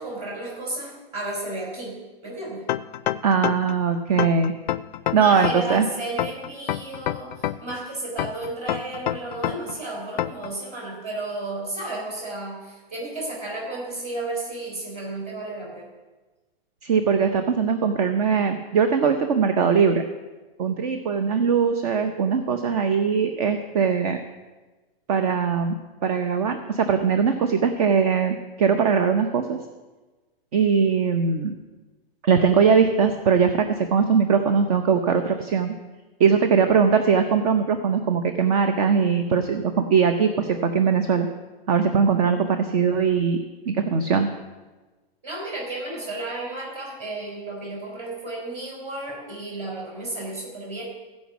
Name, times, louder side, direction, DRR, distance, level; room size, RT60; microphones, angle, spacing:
voice 1, 0.0-2.0 2.2-2.7 5.1-15.9 45.2-50.8, right 2 dB, 20° right, -3 dB, 3.7 m, -33 dB
sound 1, 2.7-3.8 4.2-5.8 6.2-7.8 8.2-9.8 10.2-10.5, left 12 dB, 50° left, 0.4 m, -26 dB
voice 2, 3.2-4.5 5.1-5.9 16.8-20.0 20.6-24.2 25.1-29.6 30.5-31.5 32.2-35.8 36.2-41.3 41.7-43.4 43.7-44.3, right 6 dB, 40° right, 7 dB, 0.7 m, -21 dB
15.0 x 5.2 x 7.1 m, 1.2 s
hypercardioid pair, 160°, 30 cm